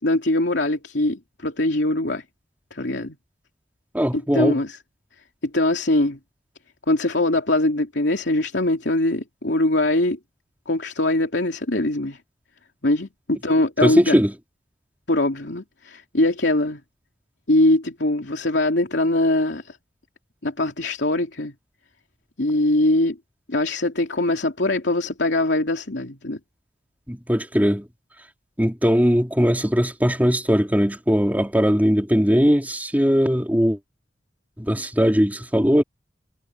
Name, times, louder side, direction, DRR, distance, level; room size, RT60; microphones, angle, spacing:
voice 1, 0.0-2.2 2.7-3.2 4.1-4.8 5.4-6.2 6.9-10.2 10.7-12.2 12.8-14.2 15.1-16.8 17.5-19.8 20.4-21.5 22.4-23.2 23.5-26.4, left 1 dB, 80° left, 3.0 m, -22 dB
voice 2, 3.9-4.6 13.8-14.3 27.1-27.9 28.6-33.8 34.6-35.8, equal, 10° right, 3.0 m, -19 dB
head